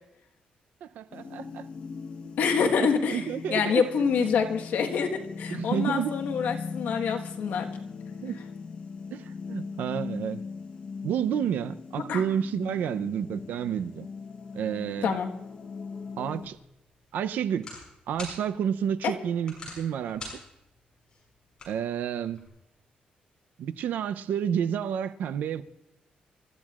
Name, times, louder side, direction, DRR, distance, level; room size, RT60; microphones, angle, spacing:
voice 1, 0.8-1.7 2.8-3.8 4.1-4.2 5.5-6.1 8.2-8.4 9.1-10.4 11.0-14.1 14.5-15.1 16.2-16.6 17.1-17.7 18.1-20.2 21.7-22.5 23.6-25.6, right 8 dB, 85° right, 0.6 m, -30 dB
sound 1, 1.1-16.5, left 5 dB, 45° left, 1.1 m, -39 dB
voice 2, 2.4-3.2 3.5-7.7 12.1-12.2 15.0-15.3, left 6 dB, 75° left, 1.4 m, -26 dB
sound 2, 16.4-22.5, left 2 dB, 30° left, 6.8 m, -47 dB
28.0 x 13.5 x 2.5 m
wide cardioid pair, 170°, 3 cm